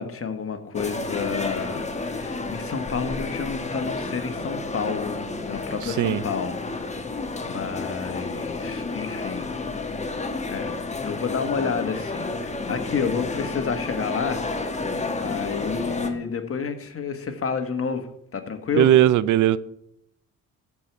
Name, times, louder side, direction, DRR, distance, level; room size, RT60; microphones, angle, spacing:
voice 1, 0.0-6.6 7.4-9.5 10.0-10.7 11.0-14.4 15.2-18.1 18.3-18.9, left 5 dB, 45° left, 1.5 m, -30 dB
sound 1, 0.7-16.1, left 3 dB, 20° left, 1.3 m, -31 dB
voice 2, 5.8-6.2 18.7-19.6, right 12 dB, 65° right, 0.5 m, -18 dB
13.0 x 4.8 x 6.8 m
cardioid pair, 85°, 33 cm